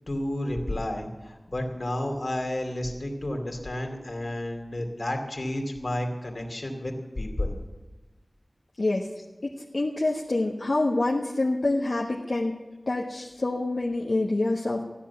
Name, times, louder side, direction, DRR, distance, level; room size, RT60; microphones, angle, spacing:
voice 1, 0.1-7.5, left 1 dB, 60° left, 2 dB, 2.7 m, -31 dB
voice 2, 8.8-9.1 9.4-12.5 12.9-14.8, left 2 dB, 75° left, -3 dB, 1.3 m, -26 dB
15.0 x 10.0 x 7.1 m, 1.1 s
wide cardioid pair, 55°, 0 cm